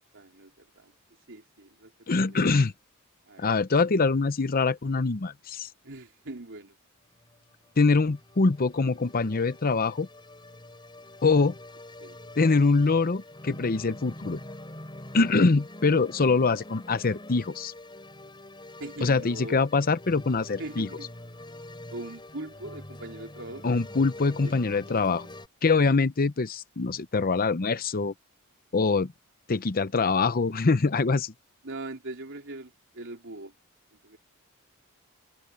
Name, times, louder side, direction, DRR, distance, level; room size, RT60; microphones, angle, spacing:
voice 1, 0.1-0.9 1.3-2.4 3.3-3.5 5.8-6.8 12.0-12.2 18.8-19.6 20.6-21.1 21.9-23.7 24.4-25.4 31.6-33.5 34.0-34.2, right 2 dB, 60° right, 3.6 m, -41 dB
voice 2, 2.1-2.7 3.4-5.7 7.8-10.1 11.2-11.5 12.4-14.4 15.1-17.7 19.0-20.9 23.6-25.3 25.6-28.1 28.7-29.1 29.5-31.3, left 4 dB, 45° left, 0.7 m, -24 dB
sound 1, 7.0-25.5, left 1 dB, 20° left, 5.0 m, -45 dB
head